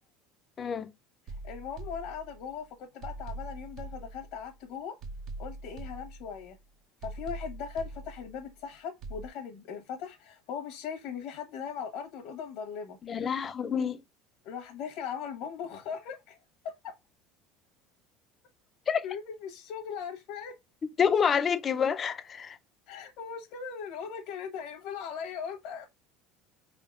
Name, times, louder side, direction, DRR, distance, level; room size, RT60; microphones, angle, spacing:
voice 1, 0.6-0.9 13.0-14.0 18.9-19.0 21.0-22.6, left 7 dB, 30° left, 0.5 m, -27 dB
sound 1, 1.3-2.6 3.0-4.6 5.0-6.6 7.0-8.6 9.0-9.3, right 2 dB, 50° right, 0.6 m, -43 dB
voice 2, 1.4-4.9 5.4-6.6 7.0-13.0 14.4-16.4 16.6-16.9 19.0-20.5 22.9-25.9, left 7 dB, 60° left, 1.0 m, -39 dB
4.6 x 3.5 x 2.4 m
cardioid pair, 140°, 0 cm